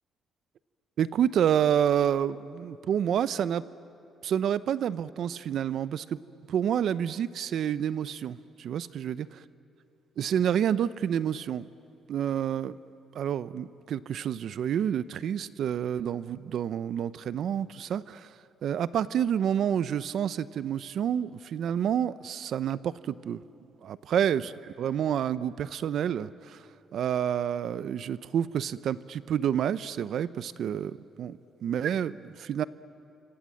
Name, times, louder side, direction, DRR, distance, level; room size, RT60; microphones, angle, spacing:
voice 1, 1.0-3.6 4.2-6.2 6.5-9.2 10.2-11.7 12.1-12.8 13.1-18.3 18.6-23.4 23.8-24.4 24.8-26.6 26.9-32.6, right 9 dB, 70° right, 16 dB, 0.7 m, -28 dB
28.0 x 25.5 x 7.7 m, 2.6 s
cardioid pair, 90°, 0 cm